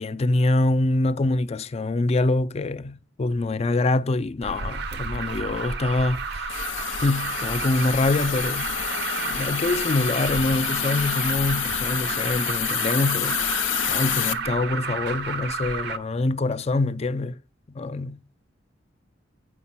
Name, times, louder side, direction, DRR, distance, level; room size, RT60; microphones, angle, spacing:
voice 1, 0.0-6.6 7.0-8.7 9.2-17.4 17.7-18.2, left 2 dB, 35° left, 0.4 m, -25 dB
Alarm, 4.4-16.0, right 5 dB, 60° right, 0.7 m, -31 dB
Hiss, 6.5-14.3, left 11 dB, 80° left, 0.6 m, -28 dB
8.6 x 5.5 x 5.8 m
head